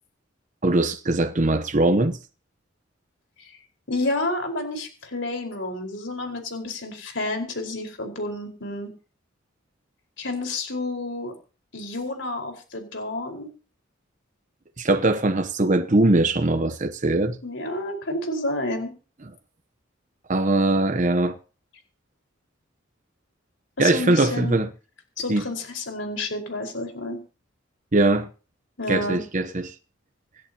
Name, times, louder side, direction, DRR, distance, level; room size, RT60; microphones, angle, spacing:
voice 1, 0.6-2.2 14.8-17.4 20.3-21.4 23.8-24.7 25.3-25.4 27.9-28.3 28.9-29.7, right 2 dB, 40° right, 0.9 m, -21 dB
voice 2, 3.9-8.9 10.2-11.3 11.7-13.5 17.4-18.9 23.8-24.6 25.2-27.2 28.8-29.2, left 2 dB, 65° left, 4.8 m, -30 dB
26.5 x 11.0 x 2.9 m
head